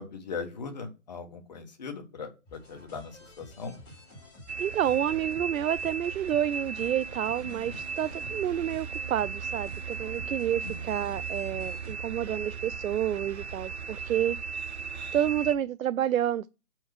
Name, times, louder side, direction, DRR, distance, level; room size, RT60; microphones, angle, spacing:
voice 1, 0.0-3.7 7.4-7.8 10.6-10.8, left 5 dB, 30° left, 1.3 m, -40 dB
sound 1, 2.5-11.9, left 1 dB, 10° left, 2.0 m, -50 dB
sound 2, 4.5-15.6, right 5 dB, 50° right, 0.8 m, -36 dB
voice 2, 4.6-14.4 15.1-16.5, right 10 dB, 70° right, 0.5 m, -29 dB
sound 3, 7.2-12.5, right 1 dB, 25° right, 1.9 m, -55 dB
5.4 x 4.6 x 5.0 m
hypercardioid pair, 165°, 42 cm